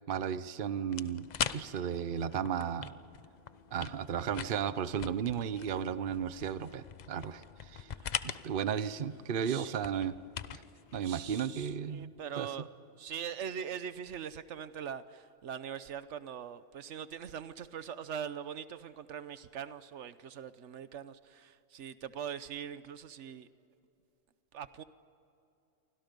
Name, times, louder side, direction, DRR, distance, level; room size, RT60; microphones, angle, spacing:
voice 1, 0.1-3.0 3.7-7.9 8.2-10.2 10.5-10.6 10.9-12.5, right 8 dB, 55° right, 14 dB, 0.9 m, -34 dB
sound 1, 0.9-12.1, left 8 dB, 45° left, 0.6 m, -43 dB
voice 2, 7.9-8.3 9.4-9.7 11.0-12.7 13.0-23.5 24.5-24.8, right 8 dB, 90° right, 13 dB, 1.2 m, -42 dB
28.5 x 24.5 x 5.3 m, 2.6 s
omnidirectional pair, 1.2 m